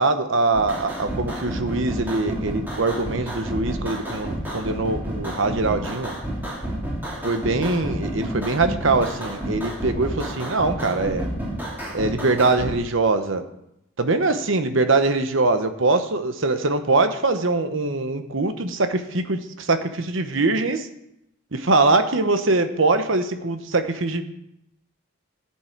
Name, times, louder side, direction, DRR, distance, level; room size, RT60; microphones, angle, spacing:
voice 1, 0.0-6.1 7.2-11.3 11.9-13.4 14.0-20.9 21.5-24.2, right 3 dB, 60° right, 9 dB, 1.0 m, -22 dB
sound 1, 0.5-12.8, right 1 dB, 10° right, 3.0 m, -30 dB
14.5 x 7.5 x 4.5 m, 0.82 s
head